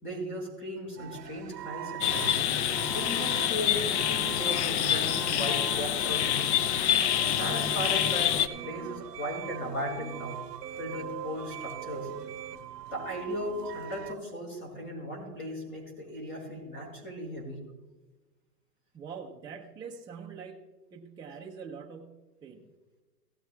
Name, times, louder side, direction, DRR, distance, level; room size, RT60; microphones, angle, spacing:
voice 1, 0.0-2.4 2.9-6.6 7.2-10.4 10.8-12.1 12.9-17.6, equal, 25° left, -1 dB, 4.3 m, -37 dB
sound 1, 1.0-14.1, right 11 dB, 85° right, 0.7 m, -42 dB
sound 2, 2.0-8.5, left 10 dB, 45° left, 0.6 m, -27 dB
voice 2, 18.9-20.6 20.9-22.6, right 6 dB, 10° right, 0 dB, 0.6 m, -44 dB
16.0 x 13.0 x 2.3 m, 1.2 s
hypercardioid pair, 125°, 47 cm